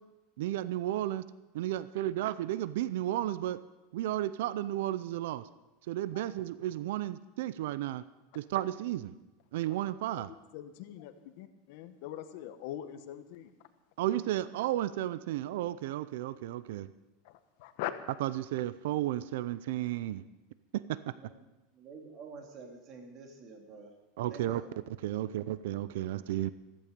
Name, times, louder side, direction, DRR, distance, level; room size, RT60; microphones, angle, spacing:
voice 1, 0.4-1.3 1.5-3.6 3.9-5.5 5.9-8.0 8.3-9.1 9.5-10.3 14.0-16.9 18.2-20.2 20.7-21.1 24.2-24.6 25.0-26.5, right 13 dB, 70° right, 16 dB, 0.5 m, -33 dB
voice 2, 10.5-13.5 17.2-17.9, left 12 dB, 55° left, 10 dB, 1.2 m, -42 dB
voice 3, 21.7-23.9 24.2-24.7, right 4 dB, 35° right, 3 dB, 2.5 m, -48 dB
15.0 x 14.5 x 5.2 m, 1.0 s
supercardioid pair, 160°, 0 cm